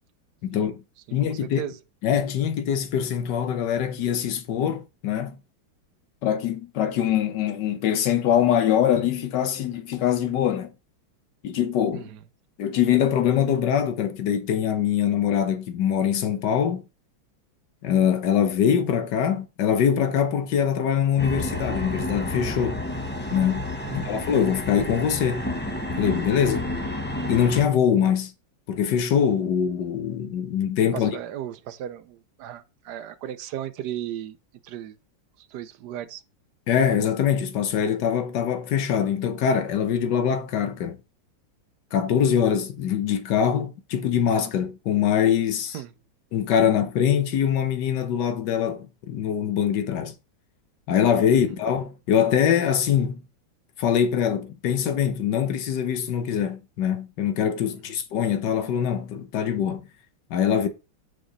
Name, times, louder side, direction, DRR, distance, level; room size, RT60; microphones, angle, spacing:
voice 1, 0.4-0.8 1.1-1.6 2.0-5.4 6.2-10.7 11.4-12.1 12.6-16.8 17.8-22.8 23.3-25.5 26.0-26.7 27.3-28.3 28.7-31.1 36.7-41.0 41.9-45.8 46.3-50.2 50.9-53.2 53.8-59.9 60.3-60.7, left 8 dB, 65° left, 1.5 m, -23 dB
voice 2, 1.1-1.8 11.9-12.2 23.9-24.2 30.9-34.4 34.6-35.0 35.4-36.2 45.7-45.9 51.3-51.4, right 11 dB, 65° right, 1.1 m, -36 dB
sound 1, 21.2-27.7, left 1 dB, 15° left, 0.4 m, -30 dB
6.9 x 5.1 x 4.0 m
omnidirectional pair, 2.1 m